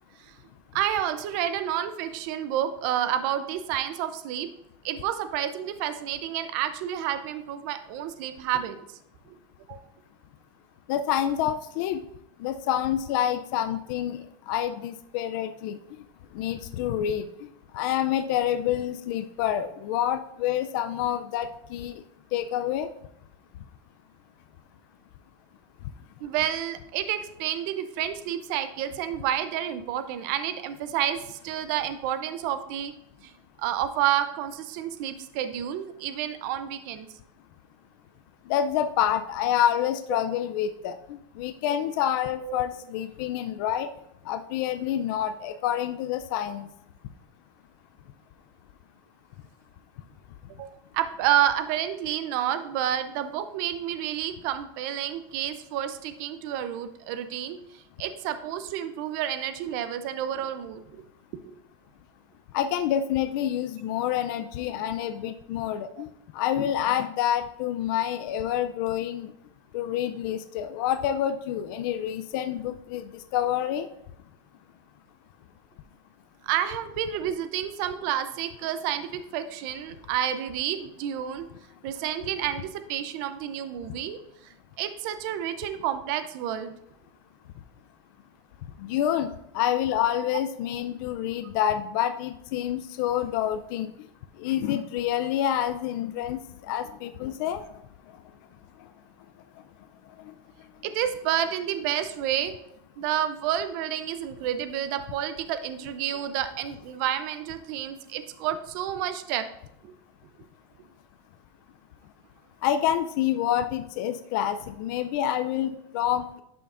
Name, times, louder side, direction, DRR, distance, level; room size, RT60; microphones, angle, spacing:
voice 1, 0.7-4.5 4.8-8.9 9.3-9.4 9.7-9.8 26.2-32.9 33.2-33.3 33.6-37.1 40.1-40.2 42.4-42.6 50.5-50.7 50.9-57.6 58.0-61.0 61.4-61.5 66.0-66.1 76.4-81.5 81.8-84.2 84.4-84.5 84.8-86.7 100.8-102.5 103.0-109.4 109.8-109.9, right 10 dB, 45° right, 10 dB, 0.6 m, -29 dB
voice 2, 10.9-12.0 12.4-14.2 14.5-15.8 16.3-17.3 17.7-22.0 22.3-22.9 38.5-41.0 41.4-43.9 44.3-46.7 62.5-66.1 66.3-69.3 69.7-73.9 88.8-93.9 94.4-97.6 112.6-116.4, left 10 dB, 50° left, 8 dB, 0.4 m, -27 dB
10.5 x 5.7 x 2.5 m, 0.78 s
supercardioid pair, 165°, 14 cm